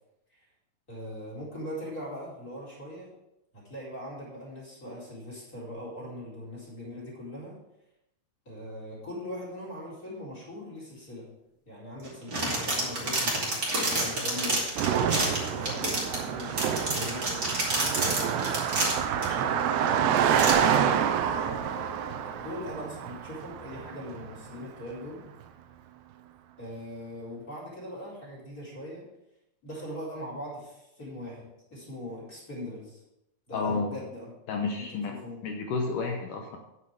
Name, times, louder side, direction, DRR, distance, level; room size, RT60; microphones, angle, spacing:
voice 1, 0.9-3.1 3.5-7.6 8.4-11.3 11.6-13.4 13.9-14.6 15.3-20.8 21.4-25.2 26.6-29.1 29.6-33.0 33.5-34.3 34.6-35.5, left 1 dB, 20° left, -5 dB, 4.5 m, -41 dB
sound 1, 12.0-19.3 19.9-20.0 20.3-20.5, right 2 dB, 25° right, 2.6 m, -29 dB
Car passing by, 14.8-24.3, right 8 dB, 85° right, 2.9 m, -28 dB
voice 2, 33.5-34.0 34.5-35.1 35.4-36.6, left 4 dB, 75° left, 2 dB, 2.0 m, -30 dB
9.8 x 8.5 x 4.8 m, 0.87 s
omnidirectional pair, 4.7 m